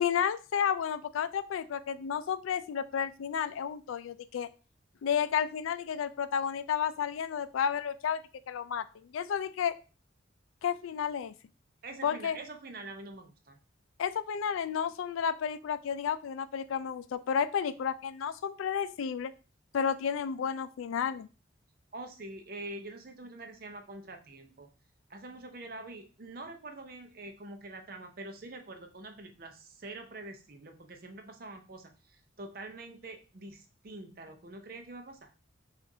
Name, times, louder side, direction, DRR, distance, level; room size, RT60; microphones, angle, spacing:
voice 1, 0.0-4.5 5.0-9.7 10.6-11.3 12.0-12.4 14.0-19.3 19.7-21.3, left 7 dB, 90° left, 13 dB, 0.3 m, -32 dB
voice 2, 11.8-13.6 21.9-24.7 25.1-35.3, right 2 dB, 50° right, 5 dB, 0.6 m, -45 dB
5.9 x 2.5 x 2.7 m, 0.34 s
head